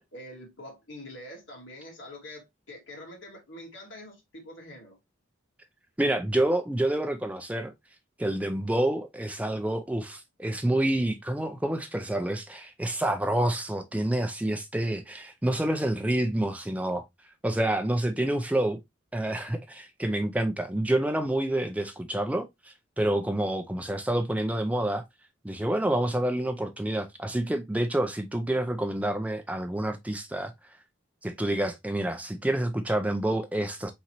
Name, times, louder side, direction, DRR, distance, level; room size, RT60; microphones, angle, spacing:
voice 1, 0.1-5.0, left 1 dB, 70° left, 2.0 m, -45 dB
voice 2, 6.0-7.7 8.2-17.1 17.4-18.8 19.1-25.0 25.4-30.8 31.2-33.9, right 1 dB, 5° right, 0.4 m, -28 dB
4.3 x 3.8 x 2.9 m
head